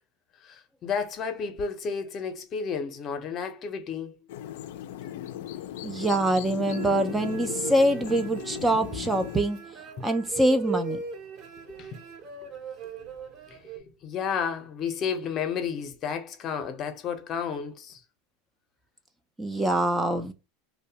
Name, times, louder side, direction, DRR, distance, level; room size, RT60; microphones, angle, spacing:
voice 1, 0.4-4.2 10.0-10.1 11.7-12.0 13.5-18.0, left 6 dB, 40° left, 0.6 m, -32 dB
sound 1, 4.3-9.4, left 12 dB, 75° left, 0.3 m, -37 dB
voice 2, 5.8-9.6 10.0-11.0 19.4-20.3, right 1 dB, 10° right, 0.3 m, -24 dB
sound 2, 6.7-13.8, right 5 dB, 45° right, 0.7 m, -39 dB
2.6 x 2.1 x 2.7 m
supercardioid pair, 115°, 0 cm